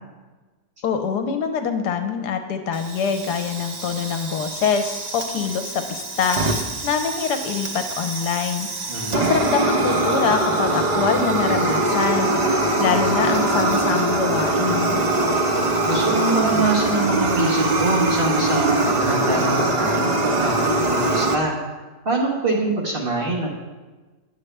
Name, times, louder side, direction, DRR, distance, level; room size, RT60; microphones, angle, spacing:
voice 1, 0.8-6.4 6.8-8.7 9.1-12.4 12.8-15.0, left 6 dB, 75° left, 7 dB, 1.2 m, -24 dB
Fire, 2.7-21.3, right 2 dB, 60° right, 0.4 m, -22 dB
voice 2, 8.9-9.3 15.9-21.5 22.0-23.5, right 2 dB, 35° right, -3 dB, 1.4 m, -24 dB
9.6 x 7.5 x 3.3 m, 1.3 s
omnidirectional pair, 1.8 m